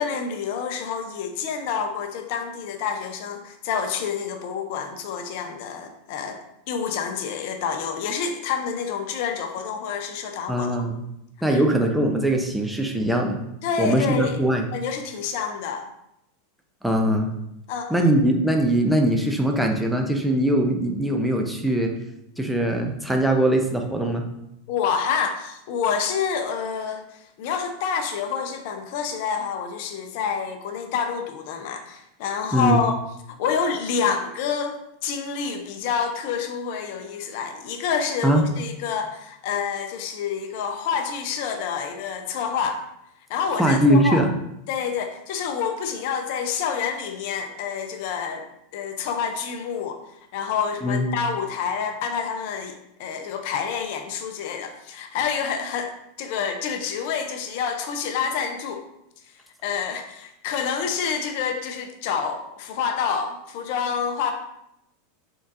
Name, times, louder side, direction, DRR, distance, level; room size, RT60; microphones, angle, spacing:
voice 1, 0.0-6.4 6.7-10.7 11.5-11.7 13.6-14.4 14.7-15.8 17.7-17.9 24.7-27.0 27.4-32.9 33.3-42.8 43.3-44.2 44.7-48.5 48.7-50.0 50.3-55.9 56.2-58.8 59.6-64.3, left 6 dB, 60° left, 6 dB, 0.5 m, -28 dB
voice 2, 10.5-11.0 11.4-13.4 13.8-14.7 16.8-17.3 17.9-21.9 22.4-24.2 32.5-32.8 38.2-38.4 43.6-44.3 50.8-51.0, right 1 dB, 5° right, 2 dB, 0.5 m, -21 dB
3.8 x 3.6 x 2.5 m, 0.82 s
hypercardioid pair, 95°, 0 cm